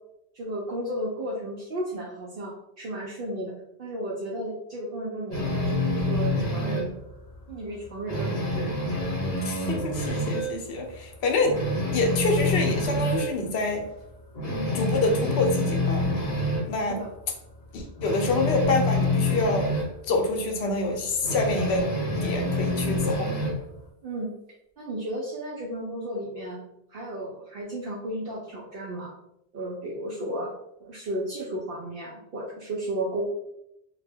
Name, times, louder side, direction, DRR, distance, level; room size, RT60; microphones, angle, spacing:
voice 1, 0.3-3.5 3.8-6.9 7.5-8.7 14.5-14.7 16.9-17.1 24.0-24.3 24.8-26.6 26.9-29.1 29.5-30.5 30.8-33.3, right 1 dB, 65° right, -4 dB, 0.7 m, -33 dB
sound 1, 5.3-6.9 7.3-7.5 7.8-10.6 11.0-11.1 11.4-13.3 13.8-13.9 14.3-16.7 18.0-19.9 21.2-23.6, left 1 dB, 45° left, 0.8 m, -27 dB
voice 2, 9.4-13.9 14.7-16.1 16.6-17.0 17.7-19.7 20.1-21.9 22.2-23.4, left 2 dB, 75° left, 2 dB, 0.8 m, -26 dB
2.2 x 2.1 x 3.3 m, 0.81 s
omnidirectional pair, 1.1 m